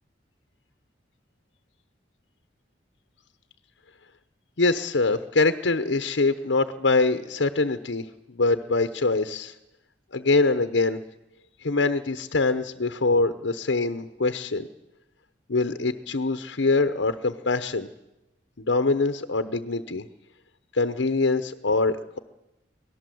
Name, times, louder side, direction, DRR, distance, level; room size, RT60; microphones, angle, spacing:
voice 1, 4.6-9.5 10.1-11.0 11.6-14.7 15.5-17.9 18.6-20.0 20.7-22.2, left 3 dB, 80° left, 8 dB, 0.9 m, -24 dB
24.0 x 18.0 x 7.8 m, 0.97 s
head